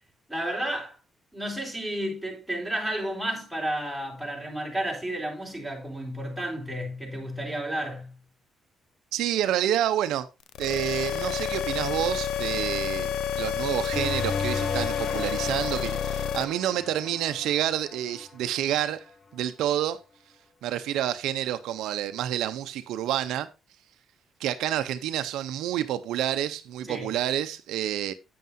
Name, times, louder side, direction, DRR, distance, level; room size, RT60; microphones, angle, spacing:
voice 1, 0.3-0.9 1.3-8.2 26.8-27.1, right 1 dB, ahead, 4.0 m, -32 dB
voice 2, 9.1-10.3 10.6-13.1 13.4-19.0 19.3-20.0 20.6-23.5 24.4-28.1, right 11 dB, 90° right, 0.6 m, -28 dB
sound 1, 10.5-16.4, left 8 dB, 80° left, 0.5 m, -29 dB
sound 2, 13.9-19.1, left 4 dB, 35° left, 0.8 m, -36 dB
9.3 x 8.6 x 2.6 m
cardioid pair, 90°, 0 cm